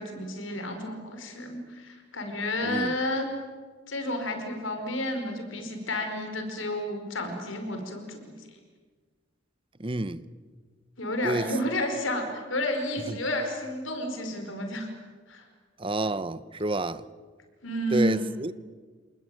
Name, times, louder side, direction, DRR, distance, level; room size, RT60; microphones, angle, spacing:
voice 1, 0.0-3.3 3.9-8.4 11.0-14.9 15.3-15.4 17.6-18.3, left 1 dB, 80° left, 5.2 m, -31 dB
voice 2, 9.8-10.2 11.2-11.5 13.1-13.2 15.8-17.0 17.9-18.5, right 2 dB, 25° right, 1.0 m, -29 dB
29.0 x 20.5 x 9.3 m
head